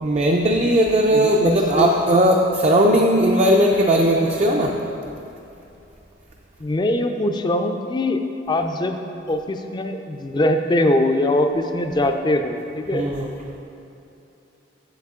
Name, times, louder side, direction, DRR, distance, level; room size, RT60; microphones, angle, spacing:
voice 1, 0.0-4.8 12.9-13.3, equal, 35° right, 1 dB, 0.4 m, -18 dB
voice 2, 1.1-1.9 6.6-8.2 8.5-9.0 9.3-13.0, left 1 dB, 25° left, 6 dB, 0.4 m, -22 dB
7.9 x 7.1 x 3.6 m, 2.9 s
head